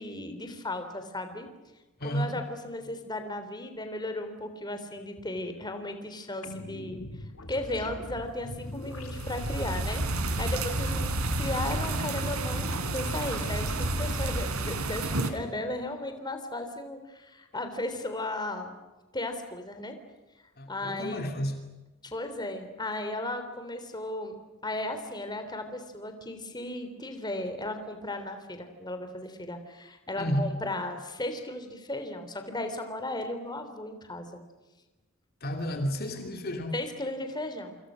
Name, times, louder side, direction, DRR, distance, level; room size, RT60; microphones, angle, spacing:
voice 1, 0.0-1.5 2.0-18.8 19.1-20.0 20.7-21.2 22.0-24.4 24.6-34.3 36.7-37.8, left 1 dB, 20° left, 3.5 m, -35 dB
voice 2, 2.0-2.3 10.9-11.0 20.6-21.6 30.2-30.6 35.4-36.8, equal, 45° left, 3.0 m, -31 dB
sound 1, 6.4-13.9, left 1 dB, 80° left, 3.5 m, -42 dB
sound 2, 8.8-15.3, right 2 dB, 85° right, 3.7 m, -30 dB
28.0 x 27.0 x 6.4 m
head